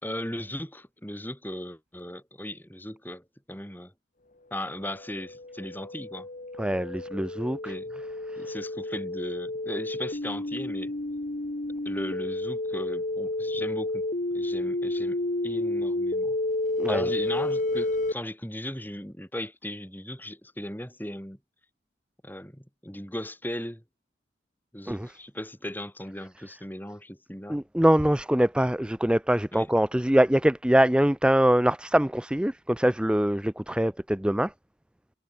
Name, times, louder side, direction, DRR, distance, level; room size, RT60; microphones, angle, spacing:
voice 1, 0.0-3.9 4.5-6.3 7.6-8.0 8.4-10.9 11.8-14.0 14.3-16.4 16.9-21.4 22.2-23.8 24.7-27.6 29.5-29.7, left 1 dB, 10° left, 5.9 m, -37 dB
sound 1, 4.9-18.1, left 2 dB, 40° left, 1.1 m, -30 dB
voice 2, 6.6-7.7 8.3-8.5 16.8-17.0 24.9-25.1 27.5-34.5, right 1 dB, 5° right, 0.5 m, -23 dB
head